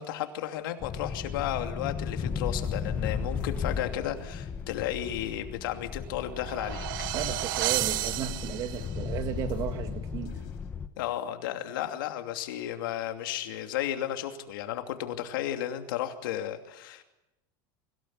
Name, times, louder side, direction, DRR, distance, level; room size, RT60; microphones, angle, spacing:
voice 1, 0.0-6.9 11.0-17.0, left 11 dB, 85° left, 6 dB, 2.7 m, -33 dB
sound 1, 0.8-10.9, left 6 dB, 15° left, 1.0 m, -35 dB
sound 2, 2.6-7.6 8.0-10.7, left 13 dB, 55° left, 2.8 m, -53 dB
sound 3, 6.1-9.1, right 16 dB, 75° right, 0.7 m, -32 dB
voice 2, 7.1-10.4, right 9 dB, 35° right, 8 dB, 1.9 m, -34 dB
24.5 x 17.5 x 9.6 m, 0.97 s
supercardioid pair, 180°, 11 cm